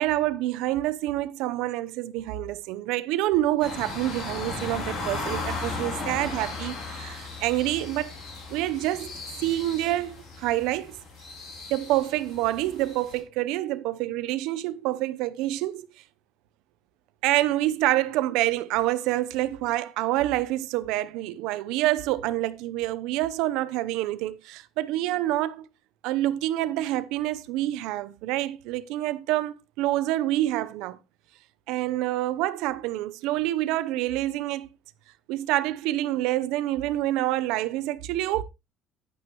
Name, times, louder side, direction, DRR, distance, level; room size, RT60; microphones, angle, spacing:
voice 1, 0.0-8.1 8.5-9.1 9.4-11.0 11.7-15.9 17.2-25.7 26.0-31.0 31.7-34.7 35.3-38.4, right 15 dB, 75° right, 0.8 m, -27 dB
sound 1, 3.6-13.2, left 3 dB, 45° left, 3.8 m, -36 dB
11.0 x 9.3 x 3.0 m
cardioid pair, 170°, 0 cm